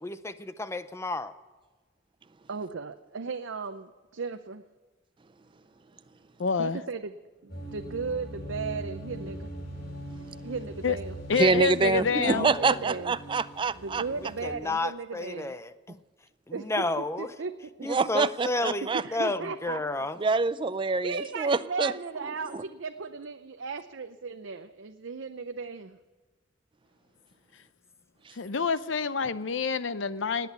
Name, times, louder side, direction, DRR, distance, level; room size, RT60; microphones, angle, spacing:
voice 1, 0.0-1.3 12.1-12.8 14.4-16.0 16.5-17.3 17.8-20.2, left 2 dB, 15° left, 12 dB, 0.6 m, -32 dB
voice 2, 2.5-4.6 6.6-7.1 7.4-9.5 10.4-11.1 12.3-13.1 13.7-15.5 16.5-17.5 18.9-20.3 21.0-26.0, right 4 dB, 80° right, 7 dB, 0.7 m, -36 dB
voice 3, 6.4-6.8 10.8-11.0 11.3-12.5 28.3-30.5, left 5 dB, 75° left, 14 dB, 0.7 m, -27 dB
sound 1, 7.5-14.5, equal, 55° left, 4.7 m, -41 dB
voice 4, 11.3-14.0 17.8-19.0 20.2-21.9 22.5-22.6, right 4 dB, 25° right, 15 dB, 0.4 m, -26 dB
19.0 x 8.4 x 8.1 m, 1.3 s
head